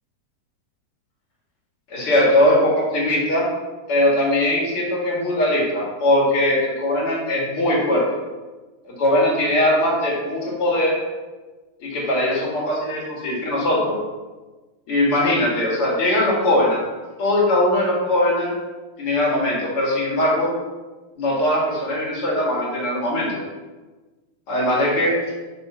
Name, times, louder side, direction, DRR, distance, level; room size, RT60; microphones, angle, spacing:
voice 1, 1.9-3.5 3.9-8.0 9.0-11.0 11.8-14.0 14.9-16.8 17.2-18.5 19.0-20.5 21.2-23.4 24.5-25.2, left 1 dB, 45° left, -5 dB, 2.3 m, -20 dB
5.8 x 5.5 x 5.6 m, 1.3 s
omnidirectional pair, 4.2 m